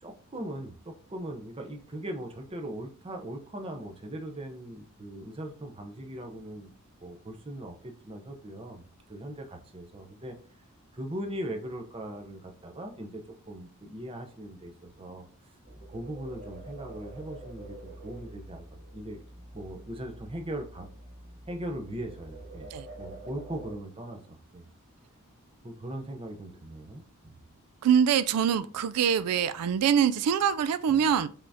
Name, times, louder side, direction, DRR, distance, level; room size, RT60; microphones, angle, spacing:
voice 1, 0.0-6.7 7.0-10.4 10.9-15.3 15.9-18.6 18.9-19.2 19.5-20.9 21.5-22.7 23.0-24.2 24.5-24.6 25.6-27.3 30.9-31.1, right 1 dB, 25° right, 0.7 m, -39 dB
sound 1, 15.6-23.8, right 1 dB, 50° right, 2.1 m, -46 dB
voice 2, 27.8-31.3, right 8 dB, 85° right, 0.3 m, -24 dB
5.6 x 3.5 x 2.7 m
head